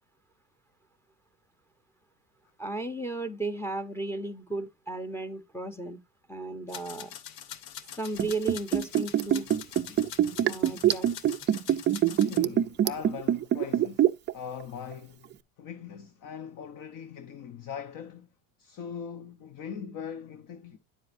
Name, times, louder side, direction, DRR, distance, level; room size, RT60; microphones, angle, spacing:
voice 1, 2.6-6.0 6.3-7.1 8.0-9.5 9.9-10.0 10.5-11.1, right 2 dB, 5° left, 0.8 m, -34 dB
sound 1, 6.7-12.4, left 9 dB, 90° left, 1.1 m, -44 dB
Liquid, 8.2-14.3 14.6-14.7, right 11 dB, 25° right, 0.4 m, -24 dB
voice 2, 12.3-15.3 15.6-18.3 18.6-20.8, left 7 dB, 40° left, 1.0 m, -41 dB
10.0 x 7.6 x 2.6 m
supercardioid pair, 105°, 48 cm